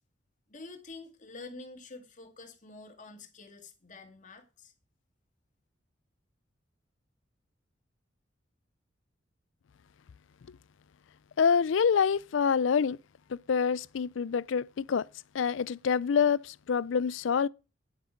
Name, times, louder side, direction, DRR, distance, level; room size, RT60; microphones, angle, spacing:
voice 1, 0.5-4.7, left 3 dB, 40° left, 2.1 m, -47 dB
voice 2, 11.4-13.0 13.3-15.1 15.3-17.5, left 6 dB, 80° left, 0.4 m, -26 dB
9.5 x 7.9 x 5.1 m
head